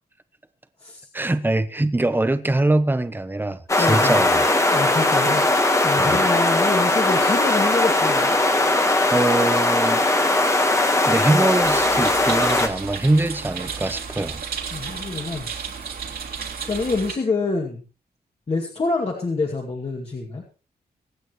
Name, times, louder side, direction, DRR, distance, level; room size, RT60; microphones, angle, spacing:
voice 1, 1.1-4.7 6.0-6.2 9.1-10.0 10.5-10.8 11.1-14.4, right 2 dB, 10° right, 0.9 m, -23 dB
sound 1, 3.7-12.7, left 2 dB, 15° left, 1.5 m, -19 dB
voice 2, 3.8-4.2 4.7-5.5 5.8-8.3 14.7-15.5 16.7-17.8 18.5-20.4, left 3 dB, 35° left, 2.4 m, -26 dB
sound 2, 11.6-17.1, right 6 dB, 65° right, 2.8 m, -33 dB
24.5 x 9.0 x 3.2 m
wide cardioid pair, 150°, 17 cm